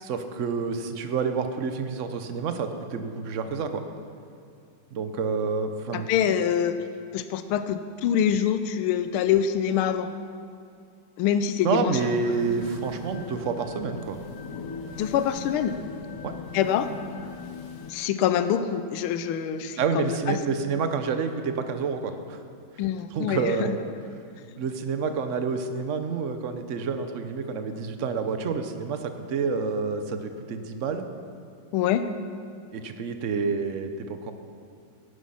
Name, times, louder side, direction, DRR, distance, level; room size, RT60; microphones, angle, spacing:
voice 1, 0.0-3.9 4.9-6.1 11.6-14.2 16.2-16.3 19.8-22.4 23.1-23.8 24.6-31.1 32.7-34.3, right 5 dB, 55° right, 8 dB, 0.9 m, -28 dB
voice 2, 5.9-6.8 7.1-10.1 11.2-12.0 15.0-15.7 16.5-16.9 17.9-20.4 22.8-23.7 31.7-32.0, left 9 dB, 85° left, 10 dB, 1.5 m, -25 dB
sound 1, 12.0-17.9, left 5 dB, 55° left, 1.2 m, -39 dB
16.5 x 10.0 x 5.7 m, 2.4 s
omnidirectional pair, 2.3 m